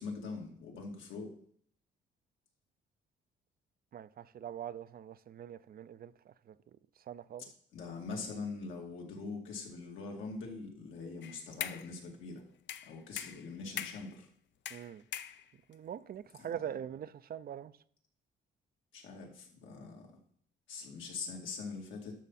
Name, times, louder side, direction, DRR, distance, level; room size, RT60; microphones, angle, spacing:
voice 1, 0.0-1.3 7.7-12.4 12.9-14.3 18.9-20.1 20.7-22.1, left 4 dB, 80° left, 2.5 m, -43 dB
voice 2, 3.9-6.5 7.1-7.4 14.7-15.0 15.7-17.7, right 9 dB, 50° right, 0.5 m, -43 dB
sound 1, 11.2-11.9 12.7-14.1 14.6-15.7, left 10 dB, 65° left, 0.6 m, -42 dB
12.0 x 6.1 x 4.2 m
cardioid pair, 90°, 20 cm